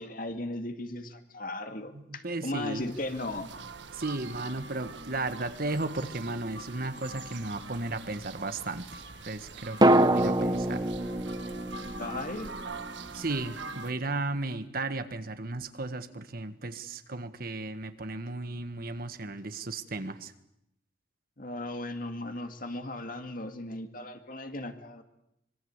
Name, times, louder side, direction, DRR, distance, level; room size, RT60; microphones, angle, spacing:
voice 1, 0.0-3.5 12.0-12.5 21.4-25.0, left 2 dB, 50° left, 7 dB, 2.3 m, -37 dB
voice 2, 1.9-2.9 3.9-10.9 13.1-20.3, right 2 dB, 55° right, 10 dB, 1.5 m, -35 dB
sound 1, 2.5-13.9, right 3 dB, 80° right, 1.7 m, -44 dB
sound 2, 6.2-7.4 9.8-13.8 14.0-14.1, right 1 dB, 25° right, 1.1 m, -27 dB
25.0 x 23.5 x 8.2 m, 0.81 s
head